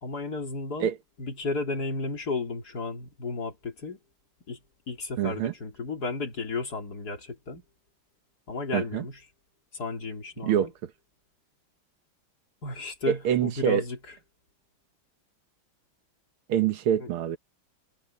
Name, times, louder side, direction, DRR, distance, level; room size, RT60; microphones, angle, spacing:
voice 1, 0.0-0.9 1.2-4.0 4.5-4.6 4.9-7.6 8.5-9.2 9.7-10.7 12.6-14.2 17.0-17.1, left 3 dB, 45° left, 3.7 m, -33 dB
voice 2, 5.2-5.5 8.7-9.0 10.4-10.7 13.1-13.8 16.5-17.4, right 10 dB, 85° right, 1.9 m, -25 dB
omnidirectional pair, 2.3 m